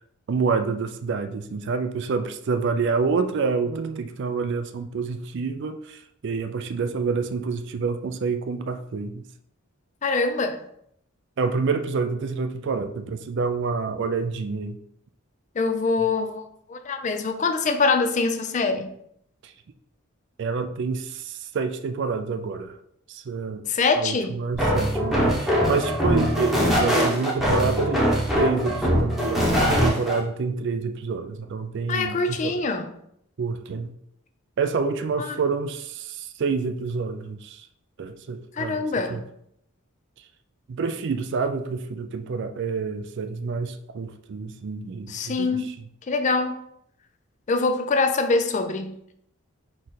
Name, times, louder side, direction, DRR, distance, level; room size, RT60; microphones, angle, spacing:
voice 1, 0.3-9.2 11.4-14.8 16.0-16.1 19.4-19.5 20.4-22.8 23.1-23.7 24.0-28.1 28.4-32.6 33.4-33.9 34.6-37.7 38.0-38.8 39.1-39.2 40.7-45.9, right 4 dB, 55° right, 0.4 m, -28 dB
voice 2, 10.0-10.6 15.6-16.4 16.7-18.9 23.7-24.4 31.9-32.9 38.6-39.2 45.1-45.7 46.1-46.5 47.5-48.9, left 3 dB, 35° left, 0.4 m, -24 dB
sound 1, 24.5-30.2, equal, ahead, 1.0 m, -22 dB
4.2 x 3.2 x 3.9 m
head